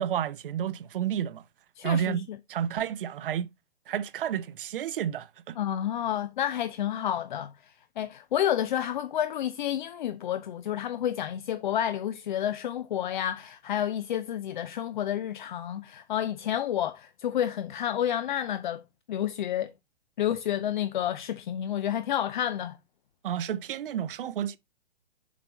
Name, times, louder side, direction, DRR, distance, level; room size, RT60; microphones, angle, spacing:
voice 1, 0.0-1.4 1.8-3.5 3.9-5.6 23.2-24.6, right 9 dB, 50° right, 0.7 m, -31 dB
voice 2, 1.8-2.2 5.6-18.8 19.1-19.7 20.2-22.8, left 10 dB, 45° left, 0.5 m, -30 dB
7.3 x 4.3 x 4.1 m
figure-of-eight pair, 125°, 34 cm